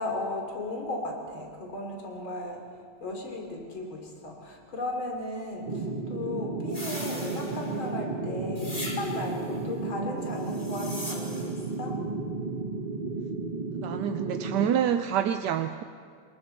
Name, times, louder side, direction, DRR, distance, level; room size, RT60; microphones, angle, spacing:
voice 1, 0.0-2.6 3.0-12.0, left 2 dB, 75° left, 1 dB, 3.7 m, -35 dB
sound 1, 5.7-14.7, right 3 dB, 30° right, 0.9 m, -33 dB
sound 2, 6.7-7.9 8.6-9.4 10.4-11.7, left 1 dB, 15° left, 2.9 m, -40 dB
voice 2, 13.8-15.8, right 9 dB, 70° right, 8 dB, 1.1 m, -27 dB
28.5 x 21.5 x 4.5 m, 2.1 s
omnidirectional pair, 2.2 m